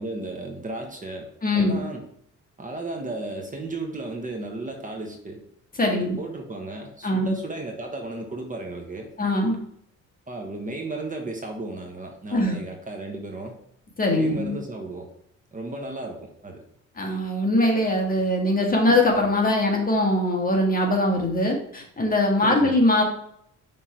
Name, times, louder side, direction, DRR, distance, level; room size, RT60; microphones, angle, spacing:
voice 1, 0.0-2.1 2.6-5.4 5.9-9.1 10.3-13.6 14.1-15.1 15.5-16.6 22.4-22.8, right 2 dB, 25° right, 2 dB, 1.1 m, -34 dB
voice 2, 1.4-1.8 5.8-6.2 7.0-7.3 9.2-9.6 12.3-12.6 14.0-14.6 17.0-23.0, left 1 dB, 30° left, 1 dB, 1.7 m, -22 dB
5.9 x 3.5 x 4.6 m, 0.68 s
cardioid pair, 90°, 30 cm